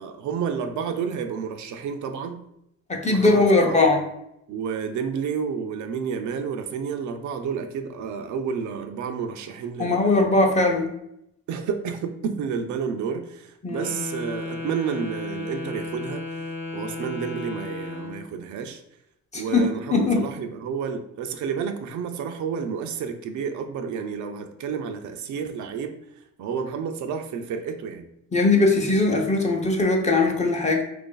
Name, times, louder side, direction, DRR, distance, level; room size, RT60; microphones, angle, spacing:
voice 1, 0.0-2.4 3.0-3.8 4.5-10.3 11.5-16.3 16.7-18.8 19.3-26.0 26.4-28.1, right 6 dB, 75° right, 7 dB, 0.5 m, -30 dB
voice 2, 2.9-4.0 9.8-10.9 13.6-13.9 19.3-20.2 28.3-30.8, left 3 dB, 25° left, 1 dB, 0.7 m, -20 dB
Wind instrument woodwind instrument, 13.7-18.3, left 3 dB, 75° left, 0.7 m, -34 dB
3.0 x 2.6 x 3.7 m, 0.79 s
cardioid pair, 90°, 30 cm